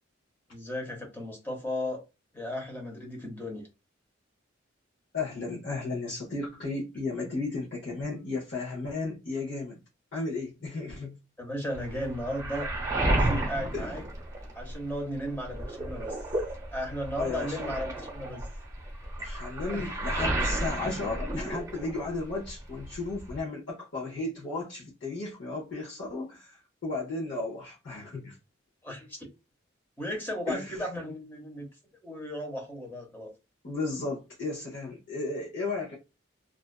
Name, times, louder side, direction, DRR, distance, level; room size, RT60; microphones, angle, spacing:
voice 1, 0.5-2.1 2.3-3.7 11.4-12.7 13.0-14.0 14.6-16.2 16.7-18.5 19.6-19.9 28.8-29.2 30.0-31.7 32.0-33.3, equal, 10° left, 0.7 m, -35 dB
voice 2, 5.1-9.8 10.1-11.2 13.7-13.9 17.2-17.7 19.2-28.4 30.5-30.8 33.6-35.9, left 3 dB, 60° left, 0.7 m, -34 dB
Waves surf, 11.7-14.9 15.3-22.2 22.4-23.4, right 1 dB, 15° right, 0.9 m, -32 dB
2.4 x 2.3 x 2.2 m
head